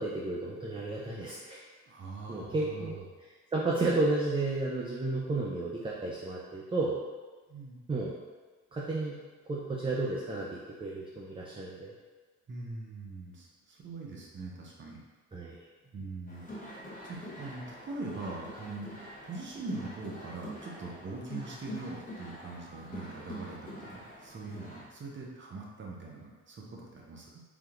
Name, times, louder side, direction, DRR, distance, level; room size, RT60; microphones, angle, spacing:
voice 1, 0.0-1.6 2.3-3.0 3.5-7.0 7.9-8.1 8.7-9.2 9.5-11.9 15.3-15.6, right 2 dB, 15° right, -4 dB, 0.4 m, -32 dB
voice 2, 1.9-3.0 7.5-7.8 12.5-15.0 15.9-16.7 17.0-18.9 19.2-27.4, right 3 dB, 40° right, -2 dB, 0.7 m, -42 dB
sound 1, 16.3-24.9, equal, 25° left, 1.1 m, -45 dB
3.5 x 2.7 x 2.4 m, 1.4 s
cardioid pair, 90°, 30 cm